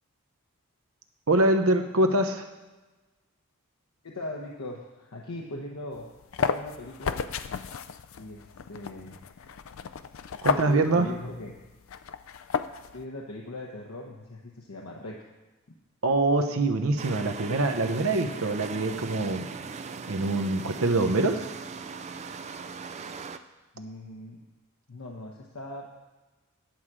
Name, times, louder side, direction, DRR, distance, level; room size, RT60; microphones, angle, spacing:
voice 1, 1.3-2.4 10.4-11.1 16.0-19.5 20.1-21.4, right 2 dB, 75° right, 6 dB, 0.9 m, -24 dB
voice 2, 4.0-6.1 6.4-7.2 8.2-9.2 10.4-11.6 12.9-15.2 17.0-17.1 23.7-24.4 24.9-25.9, left 2 dB, 90° left, -1 dB, 1.0 m, -40 dB
sound 1, 5.9-13.0, left 6 dB, 65° left, 0.4 m, -33 dB
sound 2, 17.0-23.4, right 5 dB, 30° right, 0.4 m, -39 dB
10.5 x 4.8 x 7.4 m, 1.2 s
head